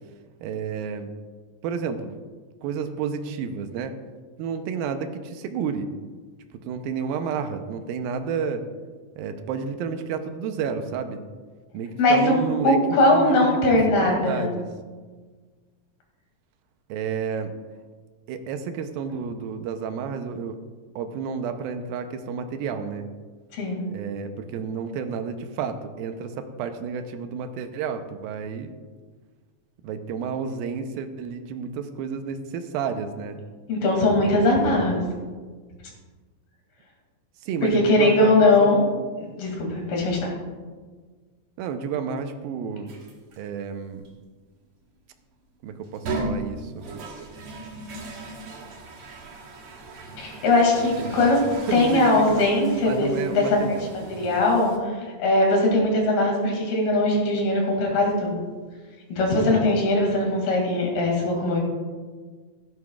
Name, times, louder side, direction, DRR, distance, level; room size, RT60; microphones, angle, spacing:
voice 1, 0.4-1.1 1.6-2.1 2.6-4.0 4.4-5.9 6.5-8.7 9.2-11.2 11.7-12.8 13.1-14.7 16.9-17.5 18.3-20.6 21.0-23.1 23.9-28.7 29.8-33.4 34.2-34.3 34.6-35.0 37.4-39.0 41.6-42.9 43.4-44.0 45.6-46.9 50.8-51.4 51.7-52.4 52.8-54.4, right 6 dB, 80° right, 7 dB, 2.4 m, -31 dB
voice 2, 12.6-14.5 23.5-23.9 33.7-35.0 37.6-38.8 39.2-40.3 50.2-51.4 51.7-58.4 59.1-61.6, left 2 dB, 80° left, 0 dB, 4.2 m, -20 dB
sound 1, 42.9-43.4 44.0-44.1 45.8-54.8, right 2 dB, 55° right, 1.8 m, -37 dB
16.0 x 11.5 x 2.4 m, 1.5 s
omnidirectional pair, 4.3 m